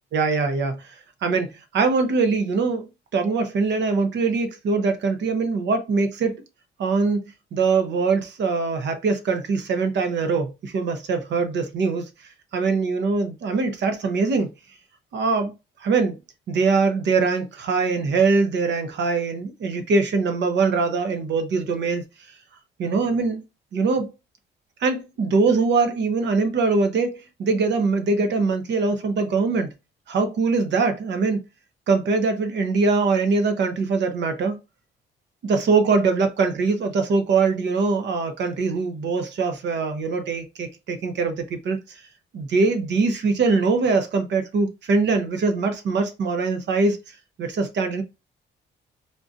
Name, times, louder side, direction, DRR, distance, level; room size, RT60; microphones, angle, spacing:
voice 1, 0.1-0.9 1.2-2.9 3.1-6.4 6.8-7.2 7.5-12.1 12.5-14.5 15.1-15.5 15.8-16.2 16.5-22.0 22.8-23.4 23.7-24.1 24.8-29.7 30.1-31.4 31.9-34.6 35.4-42.0 42.3-48.0, right 4 dB, 65° right, 0.8 m, -22 dB
3.7 x 2.6 x 2.5 m
cardioid pair, 90°, 20 cm